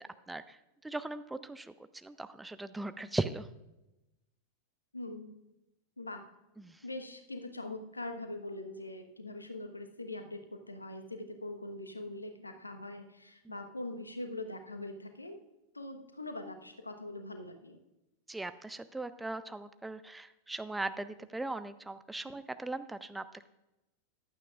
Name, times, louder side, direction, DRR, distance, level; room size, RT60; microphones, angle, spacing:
voice 1, 0.3-0.6 0.8-3.5 6.6-6.8 13.5-13.6 18.3-23.5, right 2 dB, 5° right, 12 dB, 0.5 m, -39 dB
voice 2, 4.9-5.4 6.0-6.2 6.8-15.4 15.7-17.8, left 2 dB, 80° left, 7 dB, 1.1 m, -42 dB
15.0 x 11.5 x 2.4 m, 0.94 s
figure-of-eight pair, 90°, 0 cm